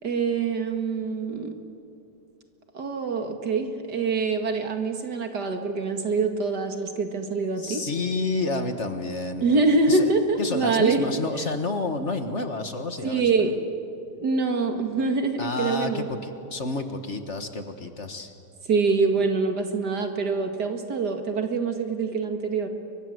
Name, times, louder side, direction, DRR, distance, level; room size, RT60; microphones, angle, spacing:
voice 1, 0.0-1.6 2.7-7.8 9.4-11.1 13.0-13.6 14.2-16.1 18.7-22.7, right 4 dB, 70° right, 5 dB, 2.6 m, -25 dB
voice 2, 7.6-9.4 9.9-10.1 10.4-13.3 15.4-18.3, left 3 dB, 45° left, 7 dB, 1.6 m, -29 dB
29.5 x 23.5 x 7.9 m, 2.7 s
omnidirectional pair, 1.8 m